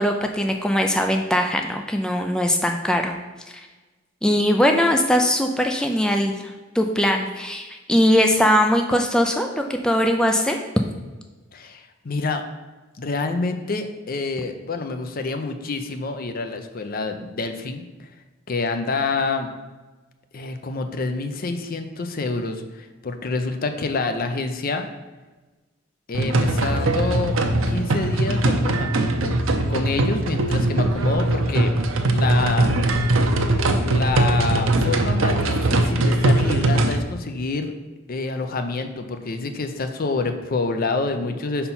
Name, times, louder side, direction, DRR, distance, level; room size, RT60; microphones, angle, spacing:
voice 1, 0.0-3.1 4.2-6.3 6.7-10.6, equal, 5° left, 3 dB, 0.4 m, -20 dB
voice 2, 11.5-12.4 13.0-18.1 18.5-19.5 20.3-24.9 26.1-27.4 27.7-29.3 29.7-31.7 32.1-32.7 33.9-37.7 38.1-41.7, left 3 dB, 50° left, 7 dB, 0.6 m, -27 dB
sound 1, 26.1-37.0, right 2 dB, 85° right, 0.7 m, -21 dB
5.5 x 4.4 x 5.4 m, 1.2 s
head